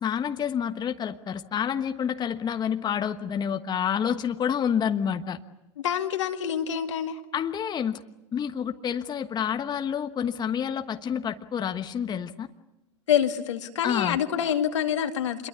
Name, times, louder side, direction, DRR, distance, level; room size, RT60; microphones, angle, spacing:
voice 1, 0.0-5.4 7.3-8.0 8.3-12.5 13.8-14.2, left 8 dB, 25° left, 7 dB, 1.3 m, -28 dB
voice 2, 5.8-7.2 13.1-15.5, left 9 dB, 75° left, 5 dB, 2.3 m, -26 dB
27.5 x 22.5 x 8.4 m, 0.94 s
hypercardioid pair, 90°, 16 cm